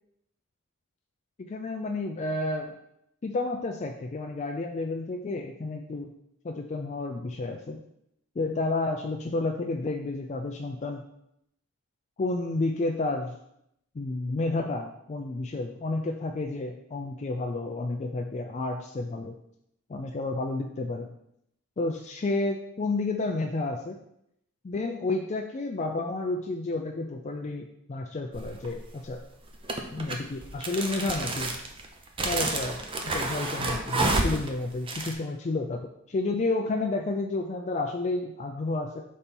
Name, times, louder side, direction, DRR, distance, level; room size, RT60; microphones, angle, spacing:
voice 1, 1.4-2.8 3.2-6.1 6.4-7.8 8.4-11.0 12.2-13.3 14.0-19.4 19.9-21.1 21.8-24.0 24.6-29.2 29.9-31.6 32.2-35.8 36.1-39.0, left 2 dB, 30° left, 3 dB, 0.3 m, -31 dB
sound 1, 28.3-28.8 29.6-35.1, right 2 dB, 25° right, 0.5 m, -29 dB
4.3 x 4.2 x 5.3 m, 0.77 s
head